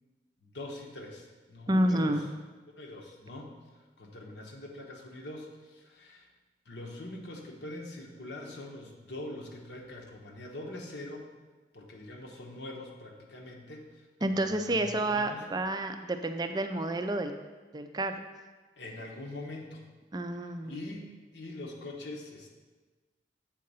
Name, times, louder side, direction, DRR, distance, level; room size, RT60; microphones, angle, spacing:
voice 1, 0.4-2.3 2.8-6.3 6.6-11.3 11.7-15.5 18.8-19.9 20.3-22.5, left 1 dB, 70° left, 0 dB, 1.0 m, -43 dB
voice 2, 1.7-2.2 14.2-17.3 17.7-18.2 20.1-20.8, right 1 dB, 20° right, 7 dB, 0.4 m, -29 dB
7.5 x 3.8 x 5.4 m, 1.3 s
head